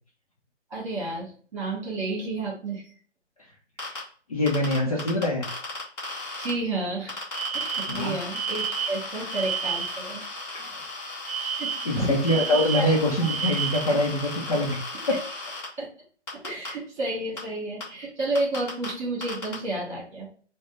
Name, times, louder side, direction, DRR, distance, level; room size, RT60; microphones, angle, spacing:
voice 1, 0.7-2.9 6.4-7.2 7.5-10.2 11.4-12.1 12.7-13.3 15.8-15.9 16.4-20.3, right 2 dB, 25° right, -4 dB, 2.1 m, -31 dB
sound 1, 3.8-4.0 4.5-6.5 7.1-15.6 16.3-16.7 17.4-17.5 17.8-17.9 18.3-18.9 19.2-19.5, left 2 dB, 10° left, 1.1 m, -36 dB
voice 2, 4.3-5.5 7.9-8.1 10.5-10.7 11.8-15.2, left 1 dB, 30° left, -1 dB, 0.6 m, -24 dB
Alarm, 7.3-10.1 11.3-14.0, right 7 dB, 60° right, 0.8 m, -31 dB
4.9 x 2.1 x 3.8 m, 0.43 s
figure-of-eight pair, 145°, 35 cm